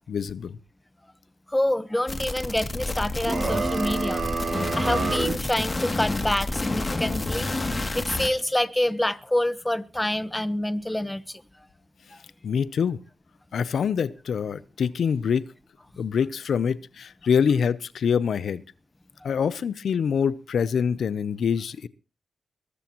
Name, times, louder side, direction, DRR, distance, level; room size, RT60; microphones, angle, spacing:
voice 1, 0.1-0.6 12.4-13.0 13.5-15.5 16.0-18.6 19.2-21.9, left 7 dB, 75° left, 0.7 m, -25 dB
voice 2, 1.5-4.2 4.8-7.5 7.9-11.4 12.1-12.2, left 1 dB, 10° left, 1.1 m, -27 dB
sound 1, 2.1-8.3, left 2 dB, 25° left, 2.5 m, -29 dB
sound 2, 3.2-5.4, right 4 dB, 55° right, 3.7 m, -28 dB
21.5 x 13.5 x 3.0 m
cardioid pair, 80°, 0 cm